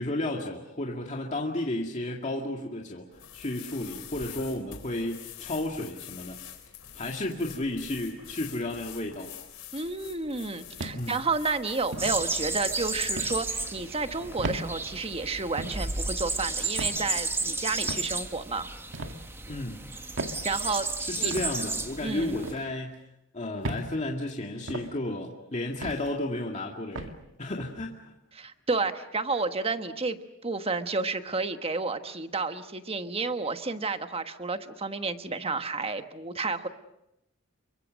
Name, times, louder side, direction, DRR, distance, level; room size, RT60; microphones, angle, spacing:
voice 1, 0.0-3.1 3.3-6.4 6.9-9.3 10.9-11.2 19.5-19.8 21.0-23.0 23.3-28.1, left 1 dB, 35° left, 0 dB, 2.2 m, -33 dB
sound 1, 3.1-14.3, left 8 dB, 80° left, 4.1 m, -46 dB
voice 2, 9.7-18.7 20.4-20.9 21.2-21.3 22.0-22.4 28.3-36.7, right 3 dB, 30° right, 8 dB, 1.3 m, -31 dB
sound 2, 10.8-11.2 11.9-12.2 13.2-13.4 14.4-14.7 15.6-15.8 16.8-17.0 17.9-18.1 18.9-19.2 20.2-20.4 21.3-21.5 22.4-22.7 23.6-23.9 24.7-24.9 25.8-26.1 27.0-27.2, right 2 dB, 65° right, 2.0 m, -35 dB
sound 3, 12.0-22.5, right 3 dB, 10° right, 1.4 m, -33 dB
29.0 x 24.0 x 6.4 m, 0.84 s
head